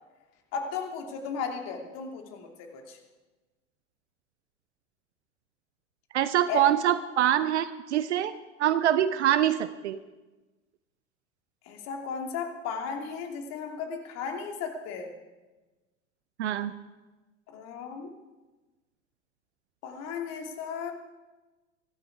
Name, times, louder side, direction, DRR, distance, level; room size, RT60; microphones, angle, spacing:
voice 1, 0.5-3.0 6.5-6.6 11.7-15.1 17.5-18.1 19.8-20.9, left 6 dB, 40° left, 3 dB, 2.8 m, -35 dB
voice 2, 6.1-8.3 8.6-10.0 16.4-16.7, right 11 dB, 60° right, 14 dB, 0.7 m, -24 dB
23.0 x 12.5 x 4.8 m, 1.2 s
figure-of-eight pair, 80°, 38 cm